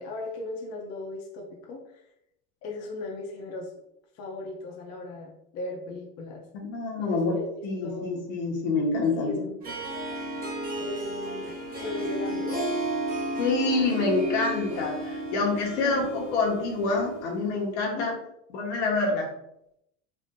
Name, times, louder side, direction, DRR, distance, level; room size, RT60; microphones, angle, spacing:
voice 1, 0.0-2.0 2.6-3.7 4.1-6.5 7.0-8.3 9.2-9.6 10.8-11.5 11.8-12.6 15.8-16.1 17.9-18.1, left 2 dB, 45° left, -1 dB, 0.6 m, -37 dB
voice 2, 6.5-7.3 7.6-9.4 13.4-18.1 18.5-19.3, left 3 dB, 85° left, -2 dB, 1.2 m, -27 dB
Harp, 9.6-17.3, right 1 dB, 25° right, 1.1 m, -33 dB
3.5 x 2.6 x 2.5 m, 0.79 s
supercardioid pair, 130°, 35 cm